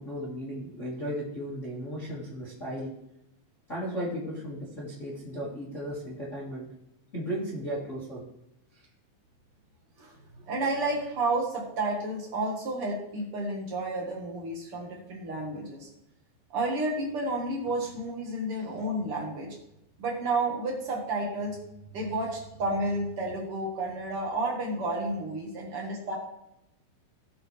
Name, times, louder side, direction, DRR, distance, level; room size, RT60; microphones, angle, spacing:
voice 1, 0.0-2.9 3.7-6.7 7.1-8.2 8.7-8.9, equal, 70° left, -6 dB, 0.7 m, -35 dB
voice 2, 10.5-15.9 16.5-19.6 20.0-21.6 21.9-26.1, right 2 dB, 70° right, -2 dB, 1.3 m, -31 dB
18.0 x 6.1 x 3.4 m, 0.83 s
omnidirectional pair, 5.6 m